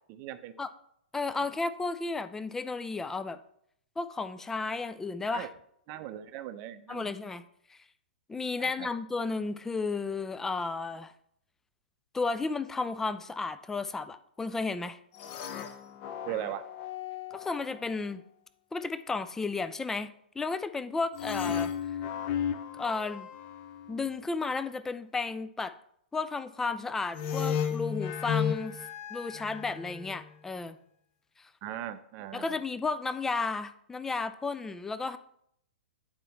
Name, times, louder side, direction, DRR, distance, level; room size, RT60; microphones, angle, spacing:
voice 1, 0.1-0.5 1.4-1.5 5.3-5.5 5.9-7.2 8.6-8.9 16.2-16.7 31.6-32.6, right 12 dB, 35° right, 11 dB, 0.6 m, -39 dB
voice 2, 1.1-3.4 4.0-5.5 6.9-7.4 7.7-7.8 8.3-11.1 12.1-15.0 17.3-18.2 18.7-21.7 22.7-23.3 23.9-25.8 26.1-28.8 29.1-30.8 31.4-31.5 32.3-35.2, left 4 dB, 5° left, 12 dB, 0.3 m, -33 dB
sound 1, 15.2-17.8 21.1-24.2 27.1-30.3, left 8 dB, 35° left, 0.7 m, -34 dB
9.2 x 4.4 x 4.2 m, 0.71 s
figure-of-eight pair, 110°, 5 cm